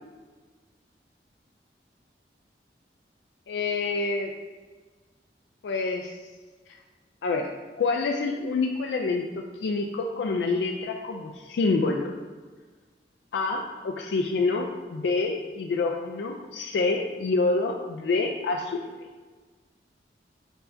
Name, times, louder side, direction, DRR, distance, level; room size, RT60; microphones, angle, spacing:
voice 1, 3.5-4.3 5.6-6.1 7.2-7.5 7.8-12.1 13.3-18.8, left 3 dB, 80° left, 2 dB, 0.3 m, -27 dB
4.5 x 2.6 x 4.2 m, 1.4 s
head